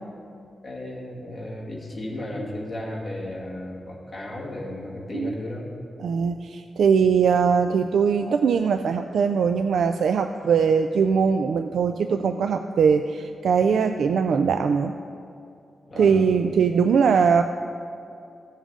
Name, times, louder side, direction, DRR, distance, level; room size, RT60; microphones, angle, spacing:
voice 1, 0.6-5.7 15.9-16.3, left 1 dB, 25° left, -4 dB, 2.0 m, -34 dB
voice 2, 6.0-15.0 16.0-17.4, right 6 dB, 80° right, 7 dB, 0.3 m, -21 dB
16.0 x 7.3 x 3.7 m, 2.5 s
wide cardioid pair, 165°, 0 cm